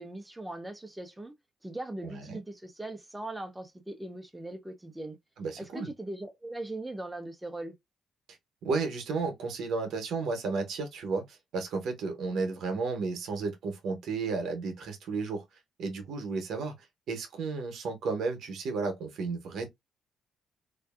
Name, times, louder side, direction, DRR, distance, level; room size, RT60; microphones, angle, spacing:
voice 1, 0.0-1.3 1.6-5.2 5.6-7.7, right 1 dB, 10° right, 0.5 m, -40 dB
voice 2, 2.0-2.4 5.4-5.9 8.6-15.4 15.8-16.7 17.1-19.7, right 4 dB, 75° right, 0.8 m, -33 dB
2.5 x 2.4 x 2.3 m
cardioid pair, 90°, 0 cm